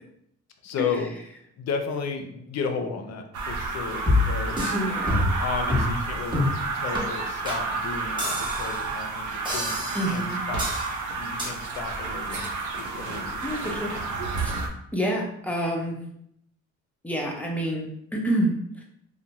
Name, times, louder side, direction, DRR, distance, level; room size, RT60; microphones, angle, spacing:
voice 1, 0.6-1.1 1.6-4.8 5.4-6.4 6.7-10.6 11.2-13.8, left 5 dB, 60° left, 6 dB, 0.5 m, -33 dB
sound 1, 3.3-14.7, right 3 dB, 75° right, 0.6 m, -30 dB
sound 2, 4.1-4.8 5.1-5.4 5.7-5.9 6.3-6.6 6.9-7.0 7.5-7.6 8.2-8.8 9.5-10.2 10.6-10.9 11.4-11.5, left 2 dB, 15° right, 1.0 m, -26 dB
voice 2, 4.7-5.3 9.9-10.4 13.4-13.9 14.4-14.6 14.9-16.0 17.0-18.8, right 1 dB, 5° left, -1 dB, 0.6 m, -28 dB
2.6 x 2.1 x 2.9 m, 0.71 s
cardioid pair, 90°, 30 cm